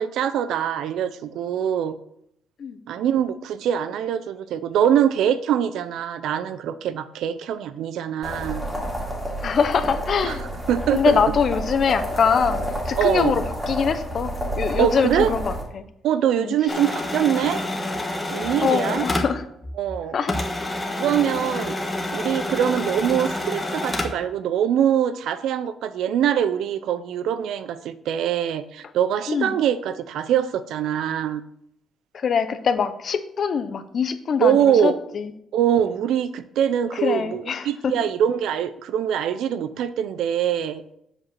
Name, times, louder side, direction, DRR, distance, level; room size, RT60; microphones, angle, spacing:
voice 1, 0.0-2.0 2.9-8.6 10.2-10.4 10.7-11.2 13.0-13.4 14.8-15.3 16.0-17.6 18.3-19.0 19.8-20.2 21.0-21.8 22.1-31.4 34.4-35.0 35.5-40.8, right 9 dB, 85° right, 13 dB, 0.6 m, -23 dB
sound 1, 8.2-15.6, equal, 10° right, 2.4 m, -29 dB
voice 2, 9.4-10.5 10.9-15.8 16.4-16.5 18.6-19.4 20.1-20.7 29.3-29.6 32.1-35.3 36.9-38.1, left 6 dB, 45° left, 11 dB, 0.8 m, -23 dB
sound 2, 16.7-20.0 20.3-24.3, left 1 dB, 15° left, 1.4 m, -28 dB
7.8 x 5.0 x 7.4 m, 0.74 s
cardioid pair, 135°, 0 cm